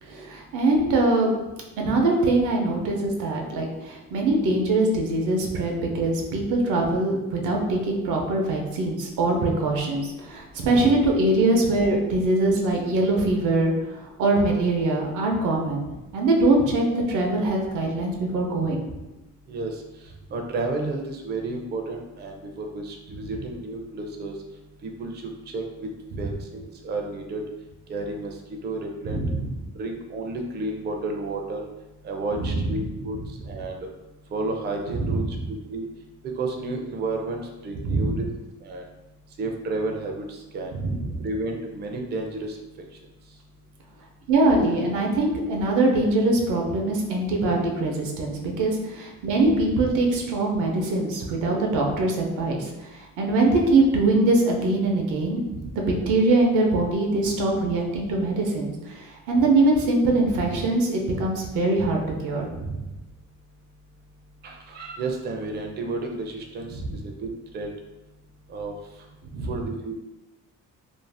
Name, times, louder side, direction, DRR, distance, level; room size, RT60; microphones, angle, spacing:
voice 1, 0.0-1.3 1.8-13.7 14.2-18.8 26.1-26.2 29.0-29.5 32.4-32.8 34.9-35.2 37.8-38.3 40.7-41.3 44.3-62.9 66.8-67.0 69.3-69.5, right 2 dB, 85° right, 0 dB, 0.7 m, -23 dB
voice 2, 20.3-24.3 24.8-25.9 26.2-27.4 27.9-28.3 28.6-29.2 29.7-31.7 32.0-33.2 33.5-33.9 34.3-35.8 36.4-38.3 38.6-38.8 39.4-40.7 41.2-42.6 64.4-66.7 67.0-67.7 68.5-68.7 69.5-69.9, right 2 dB, 35° right, 2 dB, 0.4 m, -31 dB
2.6 x 2.0 x 3.3 m, 1.0 s
cardioid pair, 90°, 30 cm